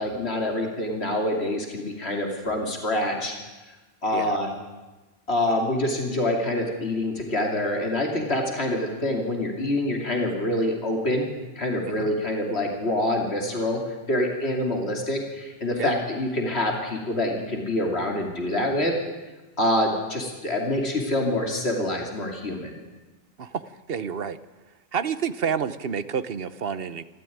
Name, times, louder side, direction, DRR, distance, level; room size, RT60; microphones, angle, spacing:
voice 1, 0.0-3.4 4.0-4.5 5.3-11.3 11.5-18.9 19.6-22.8, left 1 dB, 75° left, 2 dB, 3.1 m, -26 dB
voice 2, 23.4-24.4 24.9-27.0, right 7 dB, 65° right, 14 dB, 1.1 m, -29 dB
26.0 x 14.0 x 9.4 m, 1.2 s
omnidirectional pair, 1.1 m